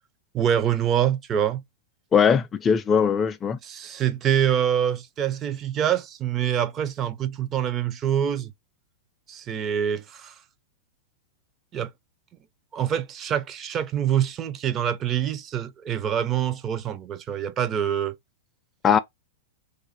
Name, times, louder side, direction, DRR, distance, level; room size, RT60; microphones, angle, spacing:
voice 1, 0.3-1.6 3.6-8.5 9.3-10.3 11.7-11.9 12.7-18.2, right 9 dB, 30° right, 0.5 m, -25 dB
voice 2, 2.1-3.6 18.8-19.0, left 7 dB, 25° left, 0.4 m, -20 dB
2.5 x 2.5 x 3.9 m
hypercardioid pair, 115°, 0 cm